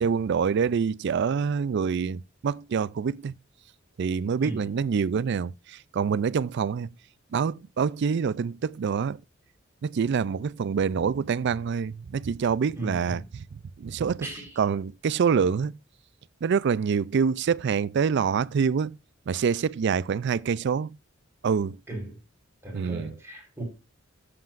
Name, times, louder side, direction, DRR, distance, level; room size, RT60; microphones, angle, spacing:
voice 1, 0.0-3.3 4.0-6.9 7.3-9.2 9.8-13.2 13.5-14.3 14.6-15.7 16.4-18.9 19.3-20.9 21.4-21.8 22.7-23.1, right 6 dB, 60° right, 0.4 m, -26 dB
voice 2, 12.7-13.2 14.2-14.6 21.9-22.2 22.6-23.6, right 1 dB, 15° right, 4.4 m, -37 dB
13.0 x 7.6 x 2.5 m
head